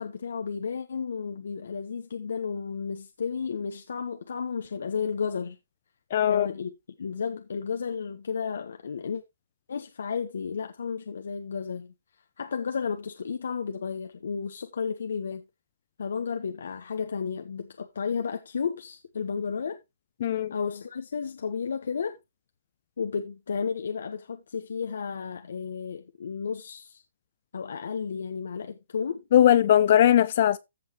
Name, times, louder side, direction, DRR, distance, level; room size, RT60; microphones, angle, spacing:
voice 1, 0.0-5.6 6.3-6.7 7.0-9.2 9.7-11.9 12.4-15.4 16.0-19.8 20.5-22.2 23.0-27.0 27.5-29.3, left 6 dB, 75° left, 1.2 m, -32 dB
voice 2, 6.1-6.5 20.2-20.5 29.3-30.6, left 11 dB, 50° left, 0.6 m, -19 dB
15.0 x 5.6 x 3.1 m
hypercardioid pair, 150°, 0 cm